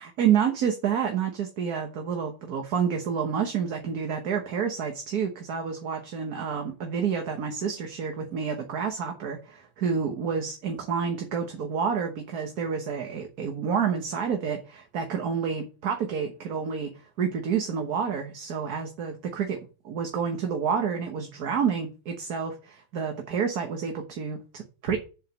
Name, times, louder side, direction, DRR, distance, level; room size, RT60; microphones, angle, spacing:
voice 1, 0.0-19.6 19.8-25.0, right 7 dB, 55° right, 4 dB, 1.6 m, -29 dB
7.6 x 5.0 x 6.4 m, 0.33 s
omnidirectional pair, 2.1 m